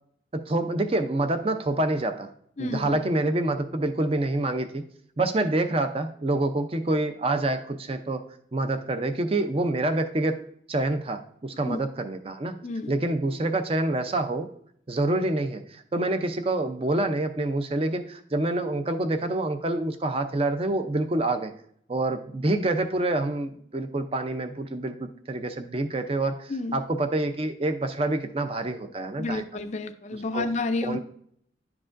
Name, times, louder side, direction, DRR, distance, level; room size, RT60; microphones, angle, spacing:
voice 1, 0.3-2.3 2.6-4.8 5.2-8.2 8.5-10.4 10.7-12.6 12.9-14.5 14.9-21.5 21.9-29.4 30.3-30.5 30.8-31.0, right 2 dB, 30° right, 8 dB, 0.5 m, -27 dB
voice 2, 2.6-3.0 11.6-11.8 12.6-12.9 26.5-26.8 29.2-31.0, left 2 dB, 35° left, 9 dB, 0.4 m, -30 dB
10.5 x 4.8 x 2.5 m, 0.65 s
head